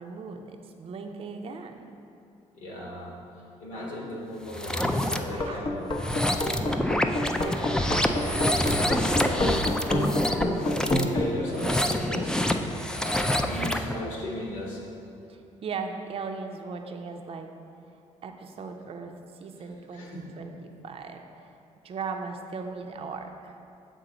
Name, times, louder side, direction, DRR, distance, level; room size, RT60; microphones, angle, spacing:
voice 1, 0.0-1.8 5.3-5.7 6.5-6.9 7.4-8.5 15.3-17.5 18.2-21.5 21.8-23.6, right 4 dB, 45° right, 4 dB, 0.5 m, -38 dB
voice 2, 2.5-3.1 3.6-5.9 9.0-12.4 12.9-14.8 19.6-20.3, left 1 dB, 80° left, -3 dB, 1.5 m, -36 dB
sound 1, 4.5-5.2 5.9-13.9, left 1 dB, 5° left, 0.4 m, -27 dB
sound 2, 5.3-11.3, left 1 dB, 40° left, 0.8 m, -28 dB
6.6 x 3.8 x 5.0 m, 2.6 s
supercardioid pair, 70°, 13 cm